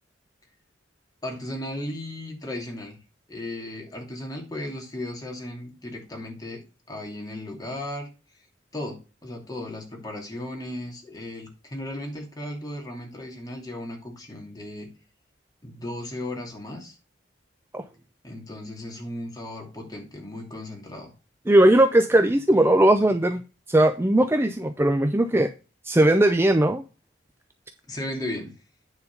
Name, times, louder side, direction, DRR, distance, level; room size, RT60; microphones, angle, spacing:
voice 1, 1.2-3.0 3.3-8.1 8.7-14.9 15.6-17.0 18.2-21.1 27.9-28.5, left 1 dB, 20° left, 2.6 m, -36 dB
voice 2, 21.5-23.4 23.7-25.5 25.8-26.8, right 1 dB, 15° right, 0.5 m, -19 dB
9.5 x 4.1 x 5.3 m
head